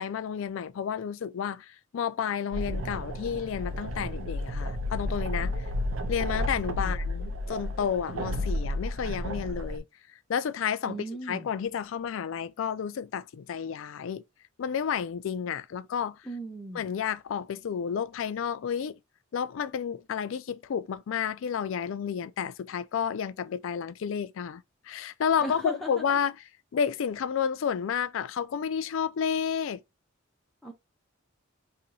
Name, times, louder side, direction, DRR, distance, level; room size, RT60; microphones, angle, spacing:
voice 1, 0.0-5.5 6.1-9.8 10.3-11.0 11.3-14.2 14.6-16.2 16.7-19.0 19.3-26.3 26.7-29.8, left 7 dB, 70° left, 0.3 m, -31 dB
sound 1, 2.5-9.8, left 1 dB, 85° right, 0.6 m, -32 dB
voice 2, 10.9-11.5 16.2-16.8 25.4-26.0 30.6-30.7, right 1 dB, ahead, 0.5 m, -37 dB
2.7 x 2.6 x 4.0 m
head